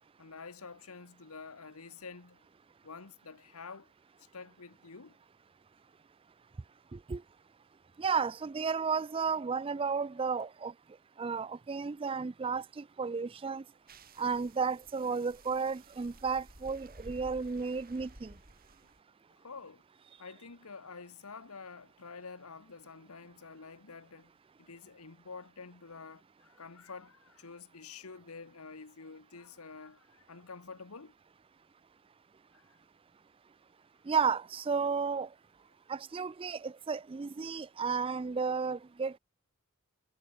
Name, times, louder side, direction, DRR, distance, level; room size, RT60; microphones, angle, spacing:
voice 1, 0.2-2.5 2.8-3.9 4.2-5.2 19.4-19.8 20.2-24.3 24.6-31.1 32.5-32.8, left 4 dB, 85° left, 1.3 m, -48 dB
voice 2, 8.0-10.7 11.2-13.6 14.2-18.3 34.1-35.3 35.9-39.2, right 5 dB, 25° right, 0.3 m, -33 dB
sound 1, 13.9-19.0, right 1 dB, 40° right, 6.6 m, -54 dB
head